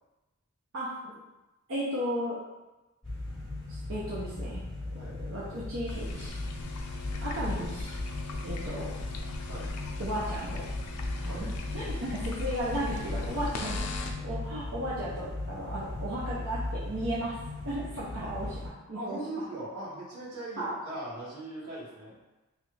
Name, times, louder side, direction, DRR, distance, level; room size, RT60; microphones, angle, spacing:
voice 1, 0.7-1.2 1.7-2.4 3.7-4.6 5.3-6.4 7.2-7.9 8.4-9.0 10.0-10.7 11.2-13.9 14.2-17.4 17.6-19.2 20.6-20.8, right 1 dB, 60° right, -8 dB, 0.6 m, -35 dB
sound 1, 3.0-18.7, left 2 dB, 5° left, 1.1 m, -38 dB
sound 2, 5.9-14.2, left 3 dB, 90° left, 0.4 m, -38 dB
voice 2, 18.9-22.2, right 2 dB, 90° right, -8 dB, 1.3 m, -39 dB
3.1 x 2.4 x 3.1 m, 1.1 s
head